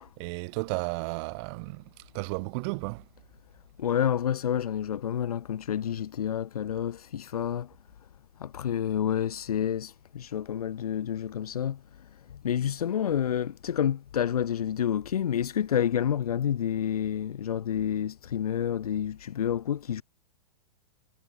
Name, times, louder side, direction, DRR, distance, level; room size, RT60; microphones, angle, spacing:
voice 1, 0.2-3.0, right 32 dB, 45° right, 1.5 m, -33 dB
voice 2, 3.8-7.7 8.4-11.8 12.3-20.0, left 9 dB, 85° left, 1.0 m, -29 dB
hypercardioid pair, 125°, 19 cm